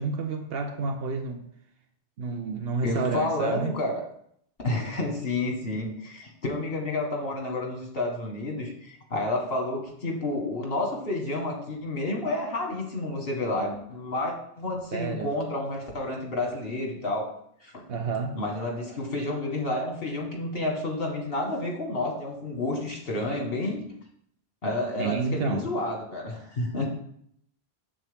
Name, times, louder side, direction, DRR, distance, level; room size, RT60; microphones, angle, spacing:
voice 1, 0.0-1.5 2.2-3.8 14.9-15.3 17.9-18.4 25.0-25.7, right 4 dB, 75° right, 0.9 m, -30 dB
voice 2, 2.8-4.0 4.6-17.3 17.6-17.8 18.3-23.9 24.6-26.9, left 2 dB, 70° left, 1.8 m, -30 dB
7.5 x 6.8 x 3.5 m
omnidirectional pair, 1.0 m